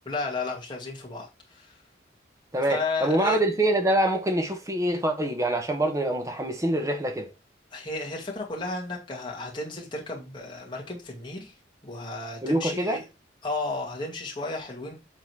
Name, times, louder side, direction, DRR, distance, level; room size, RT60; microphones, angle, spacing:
voice 1, 0.1-1.7 2.6-3.4 7.7-11.5 11.8-13.0 13.4-14.9, left 3 dB, 25° left, 2.2 m, -33 dB
voice 2, 2.5-7.3 12.4-13.0, right 1 dB, 15° right, 1.0 m, -25 dB
7.3 x 3.9 x 4.7 m
head